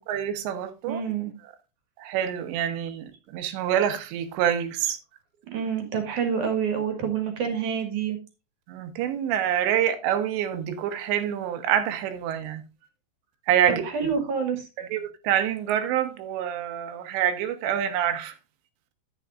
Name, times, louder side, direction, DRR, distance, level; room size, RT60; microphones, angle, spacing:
voice 1, 0.0-1.0 2.0-5.0 8.7-12.6 13.5-14.1 14.8-18.4, right 10 dB, 85° right, 3.3 m, -26 dB
voice 2, 0.9-1.3 5.5-8.2 13.7-14.6, right 7 dB, 55° right, 2.8 m, -27 dB
10.5 x 9.5 x 2.5 m
omnidirectional pair, 5.0 m